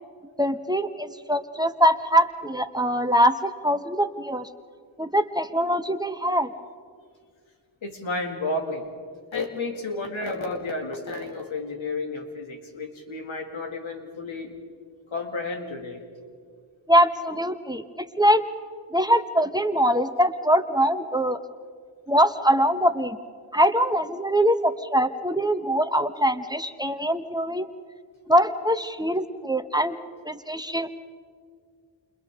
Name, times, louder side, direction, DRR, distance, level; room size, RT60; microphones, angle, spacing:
voice 1, 0.4-4.5 5.0-6.5 16.9-17.8 18.2-18.4 18.9-21.4 22.1-23.2 23.5-27.7 28.3-30.0 30.2-30.9, equal, 10° right, 8 dB, 1.2 m, -23 dB
voice 2, 7.8-8.8 9.3-14.5 15.1-16.0, left 3 dB, 90° left, 2 dB, 2.6 m, -31 dB
29.0 x 28.5 x 3.8 m, 2.1 s
cardioid pair, 45°, 46 cm